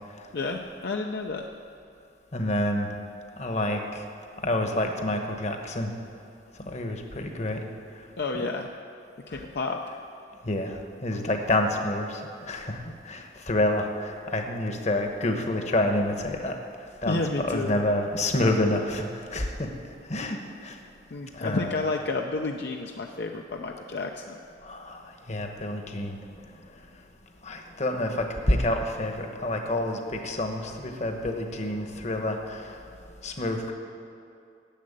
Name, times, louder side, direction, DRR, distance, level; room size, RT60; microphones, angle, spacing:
voice 1, 0.3-1.5 8.2-8.7 9.3-9.8 17.1-17.8 21.1-24.4, left 3 dB, 60° left, 2 dB, 0.6 m, -30 dB
voice 2, 2.3-3.0 3.4-4.0 4.4-5.9 6.6-7.6 8.0-8.1 9.3-9.4 10.4-20.8 21.3-21.7 24.6-26.2 27.4-32.8 33.2-33.7, left 1 dB, 35° left, 4 dB, 1.1 m, -28 dB
10.5 x 7.7 x 8.8 m, 2.5 s
head